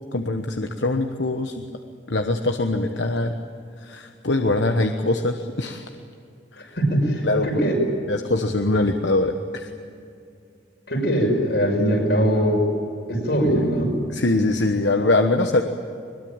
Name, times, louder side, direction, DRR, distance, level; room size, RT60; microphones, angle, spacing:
voice 1, 0.1-1.6 2.1-3.3 3.8-5.9 6.5-6.8 7.2-7.6 8.1-9.7 14.1-15.6, left 2 dB, 85° left, 5 dB, 1.3 m, -23 dB
voice 2, 6.8-7.8 10.9-12.6 13.1-13.9, equal, 70° left, 1 dB, 6.0 m, -21 dB
22.5 x 22.0 x 9.0 m, 2.5 s
head